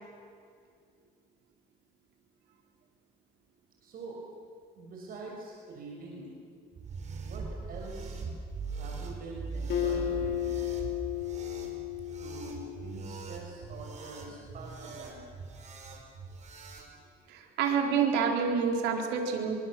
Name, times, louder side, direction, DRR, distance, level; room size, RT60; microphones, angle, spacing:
voice 1, 3.8-4.2 4.7-6.3 7.2-8.2 8.7-10.5 12.2-15.3, right 3 dB, 60° right, -1 dB, 6.3 m, -45 dB
sound 1, 6.7-16.9, right 4 dB, 45° right, 5.1 m, -41 dB
Acoustic guitar, 9.7-13.2, left 11 dB, 80° left, 4.1 m, -33 dB
voice 2, 17.3-19.5, right 6 dB, 85° right, 3 dB, 4.2 m, -28 dB
26.0 x 24.5 x 7.7 m, 2.3 s
cardioid pair, 110°, 17 cm